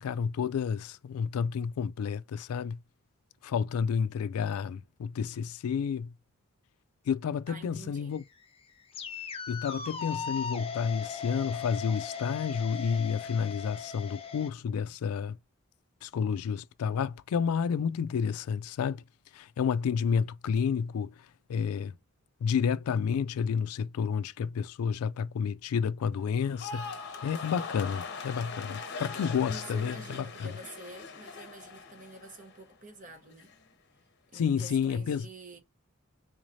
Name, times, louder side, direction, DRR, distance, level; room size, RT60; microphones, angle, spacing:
voice 1, 0.0-2.8 3.4-6.1 7.1-8.2 9.5-15.4 16.0-19.0 19.3-21.1 21.5-21.9 22.4-26.9 27.2-30.0 30.4-30.5 34.3-35.3, left 6 dB, 85° left, 0.3 m, -30 dB
voice 2, 7.5-8.2 29.4-33.5 34.3-35.6, right 2 dB, 35° right, 0.8 m, -48 dB
sound 1, 8.1-14.5, left 6 dB, 25° left, 0.5 m, -38 dB
sound 2, 26.4-32.7 33.0-33.5, left 4 dB, 50° left, 0.8 m, -41 dB
3.9 x 3.1 x 2.6 m
head